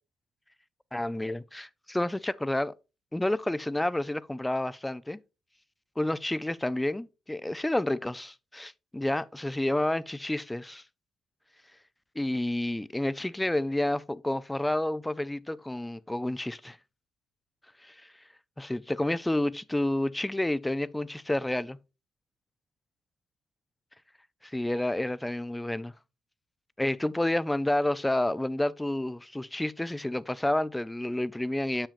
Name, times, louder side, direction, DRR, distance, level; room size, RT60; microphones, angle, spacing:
voice 1, 0.9-2.7 3.1-5.2 6.0-10.8 12.2-16.8 17.8-17.9 18.6-21.8 24.4-25.9 26.8-31.9, left 1 dB, 10° left, 0.4 m, -30 dB
8.9 x 7.2 x 2.5 m
cardioid pair, 90°, 0 cm